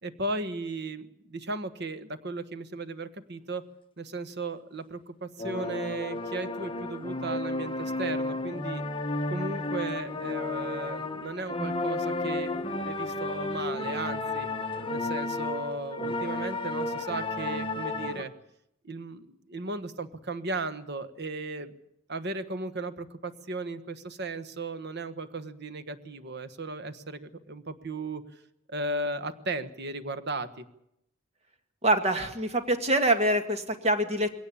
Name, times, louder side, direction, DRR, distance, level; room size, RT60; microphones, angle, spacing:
voice 1, 0.0-3.6 4.0-8.8 9.3-12.5 12.8-14.5 14.9-18.3 18.8-21.7 22.1-28.2 28.7-30.7, right 2 dB, 55° right, 12 dB, 1.4 m, -36 dB
sound 1, 5.4-18.2, left 2 dB, 25° left, 1.3 m, -32 dB
voice 2, 31.8-34.4, right 1 dB, 30° right, 7 dB, 2.1 m, -25 dB
21.5 x 17.5 x 8.6 m, 0.78 s
head